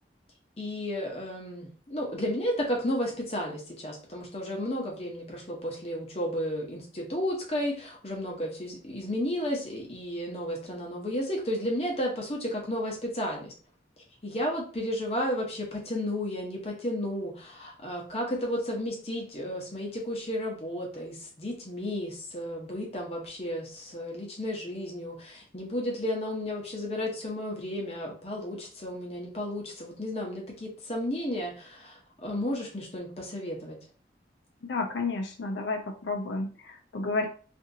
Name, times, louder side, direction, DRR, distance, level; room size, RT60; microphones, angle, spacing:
voice 1, 0.6-13.5 14.2-33.8, left 1 dB, 35° left, -1 dB, 0.8 m, -33 dB
voice 2, 34.7-37.3, left 3 dB, 80° left, 5 dB, 0.5 m, -31 dB
2.7 x 2.6 x 2.6 m, 0.39 s
head